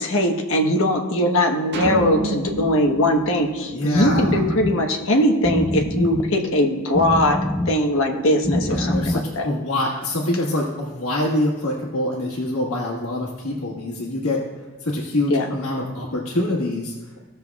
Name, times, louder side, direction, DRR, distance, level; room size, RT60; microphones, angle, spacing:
voice 1, 0.0-7.4 7.7-9.5 15.3-15.5, left 1 dB, 65° left, 2 dB, 1.1 m, -20 dB
sound 1, 1.7-4.3, right 1 dB, 50° right, 1.3 m, -29 dB
voice 2, 3.7-4.4 8.6-17.1, left 1 dB, 85° left, -4 dB, 1.6 m, -25 dB
sound 2, 3.7-9.6, left 1 dB, 15° left, 0.4 m, -26 dB
17.0 x 6.8 x 2.3 m, 1.2 s
head